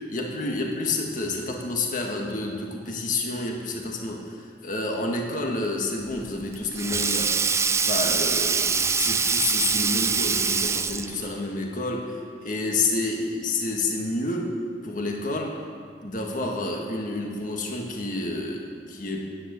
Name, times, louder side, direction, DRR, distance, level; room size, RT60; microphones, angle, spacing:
voice 1, 0.1-7.4 7.8-14.6 14.8-15.6 16.0-19.2, left 2 dB, 50° left, 1 dB, 1.7 m, -29 dB
Sink (filling or washing), 6.1-11.3, right 5 dB, 15° right, 0.4 m, -24 dB
10.5 x 9.8 x 8.2 m, 2.1 s
head